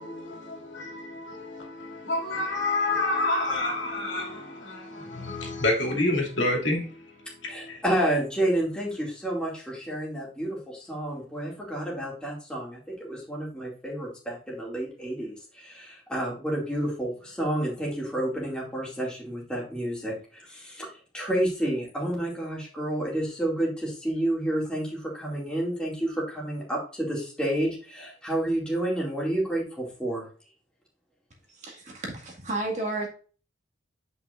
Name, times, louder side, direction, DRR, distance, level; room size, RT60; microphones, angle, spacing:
voice 1, 0.0-7.8, left 2 dB, 70° left, 2.6 m, -29 dB
voice 2, 7.5-30.3, right 1 dB, 5° left, 2.3 m, -30 dB
voice 3, 31.6-33.1, right 2 dB, 35° right, 1.9 m, -32 dB
9.2 x 5.5 x 2.5 m
head